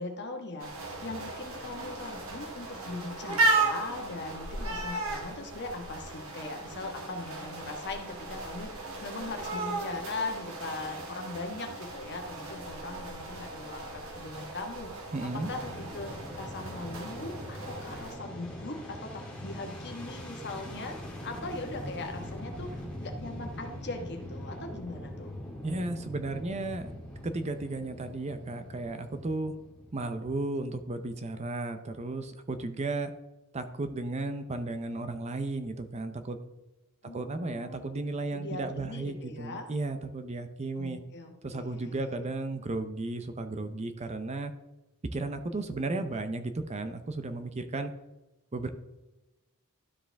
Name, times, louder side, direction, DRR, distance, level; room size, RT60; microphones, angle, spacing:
voice 1, 0.0-15.1 15.3-25.3 37.0-37.9 38.3-39.7 40.8-42.1, left 2 dB, 50° left, 3 dB, 1.3 m, -40 dB
sound 1, 0.6-18.2, right 2 dB, 65° right, 1.7 m, -35 dB
voice 2, 15.1-15.5 25.6-26.9 27.2-29.6 29.9-33.1 33.5-36.4 37.1-41.0 41.4-44.5 45.1-47.9 48.5-48.7, right 2 dB, 30° right, 9 dB, 0.5 m, -34 dB
Fixed-wing aircraft airplane, 15.3-30.4, left 1 dB, 5° left, 1.7 m, -42 dB
12.5 x 4.9 x 3.4 m, 1.0 s
head